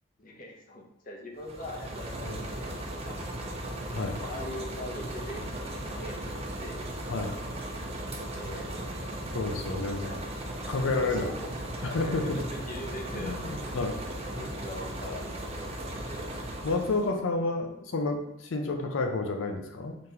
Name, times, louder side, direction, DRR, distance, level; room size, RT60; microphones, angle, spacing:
voice 1, 0.2-3.6 4.2-6.8 8.3-8.7 9.9-10.2 10.6-11.5 12.0-13.7 14.4-16.3, left 1 dB, 45° left, 0 dB, 0.7 m, -43 dB
sound 1, 1.3-17.1, right 1 dB, 30° right, 0.6 m, -37 dB
voice 2, 9.3-10.0 10.7-11.3 11.8-12.4 13.1-14.0 14.3-14.5 16.6-20.0, left 3 dB, 80° left, 4 dB, 0.6 m, -30 dB
4.1 x 3.3 x 2.8 m, 0.83 s
head